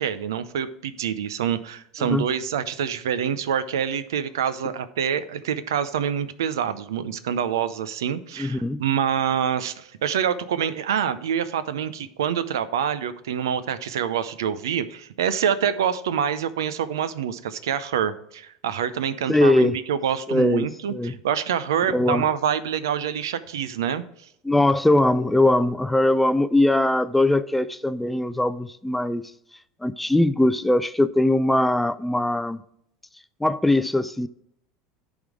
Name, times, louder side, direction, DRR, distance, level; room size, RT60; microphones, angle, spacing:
voice 1, 0.0-24.0, right 8 dB, 90° right, 0.6 m, -26 dB
voice 2, 8.4-8.8 19.3-19.8 20.3-21.1 21.9-22.3 24.4-29.3 29.8-32.6 33.4-34.3, left 1 dB, 5° left, 0.4 m, -21 dB
10.5 x 3.6 x 4.8 m
supercardioid pair, 100°, 2 cm